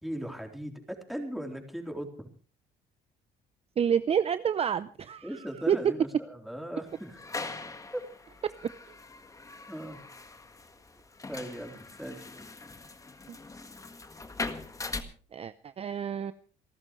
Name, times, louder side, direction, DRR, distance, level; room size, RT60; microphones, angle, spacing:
voice 1, 0.0-2.3 5.2-7.2 7.9-8.0 9.7-10.0 11.3-12.4, equal, ahead, 3 dB, 3.7 m, -38 dB
voice 2, 3.8-5.4 5.7-5.8 13.3-13.4 15.3-16.3, right 8 dB, 35° right, 13 dB, 0.7 m, -28 dB
sound 1, 6.9-15.0, left 3 dB, 20° left, 1.7 m, -41 dB
27.5 x 13.0 x 3.2 m, 0.39 s
cardioid pair, 110°, 17 cm